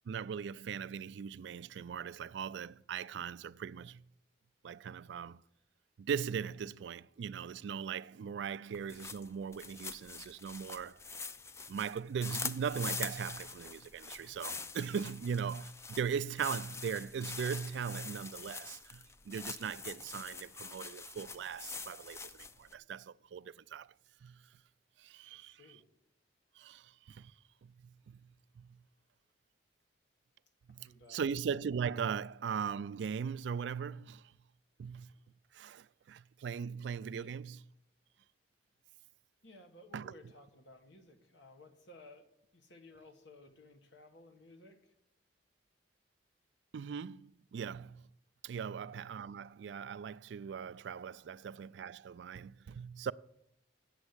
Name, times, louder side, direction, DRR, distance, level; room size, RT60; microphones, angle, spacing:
voice 1, 0.1-4.0 4.6-5.4 6.0-11.0 11.7-23.9 24.2-24.4 25.0-25.8 26.6-27.3 27.6-28.8 30.7-34.3 34.8-35.1 35.5-37.6 39.9-40.1 46.7-48.1 48.4-53.1, right 7 dB, 70° right, 0.3 m, -39 dB
sound 1, 8.7-22.7, left 4 dB, 15° left, 0.4 m, -44 dB
voice 2, 25.2-25.9 30.7-31.2 37.1-37.4 39.4-42.3 42.5-44.9 48.6-48.8 51.2-51.4, left 1 dB, 75° left, 1.3 m, -57 dB
8.4 x 7.0 x 8.0 m
head